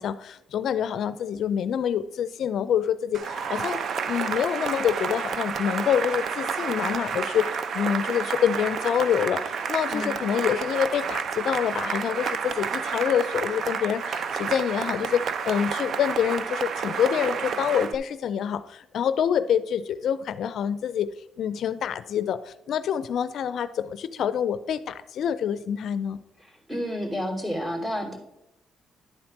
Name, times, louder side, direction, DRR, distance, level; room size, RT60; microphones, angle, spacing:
voice 1, 0.0-3.8 4.1-21.1 21.4-26.2, left 8 dB, 70° left, 14 dB, 0.4 m, -26 dB
Cheering / Applause, 3.1-18.0, right 6 dB, 60° right, 0.6 m, -30 dB
voice 2, 26.7-28.2, equal, 15° right, 1 dB, 2.7 m, -30 dB
11.0 x 4.3 x 5.9 m, 0.86 s
cardioid pair, 90°, 0 cm